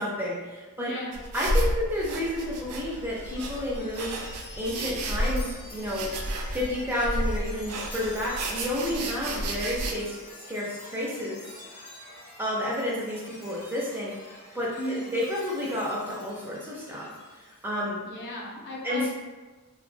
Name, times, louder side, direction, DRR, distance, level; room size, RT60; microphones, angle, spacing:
voice 1, 0.0-0.9 1.3-6.2 6.5-11.4 12.4-17.1 17.4-18.0 18.8-19.0, left 1 dB, 10° right, -5 dB, 0.4 m, -31 dB
voice 2, 0.8-1.2 14.8-15.1 18.0-19.1, equal, 50° left, -3 dB, 0.5 m, -35 dB
sound 1, 1.1-9.9, right 1 dB, 80° right, 0.4 m, -32 dB
Chime, 1.9-17.7, left 1 dB, 90° left, 0.8 m, -47 dB
2.2 x 2.1 x 3.1 m, 1.3 s
head